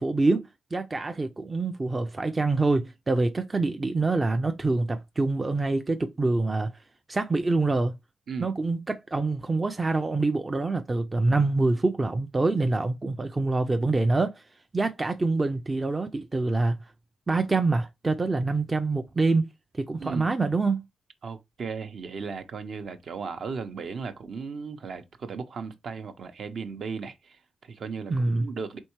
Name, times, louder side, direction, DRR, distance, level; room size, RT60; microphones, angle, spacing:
voice 1, 0.0-6.7 7.1-7.9 8.4-14.4 14.7-16.8 17.3-19.5 19.8-20.8 28.1-28.5, right 3 dB, 20° right, 0.4 m, -25 dB
voice 2, 21.2-28.8, right 5 dB, 55° right, 0.7 m, -36 dB
4.4 x 3.6 x 3.0 m
cardioid pair, 115°, 0 cm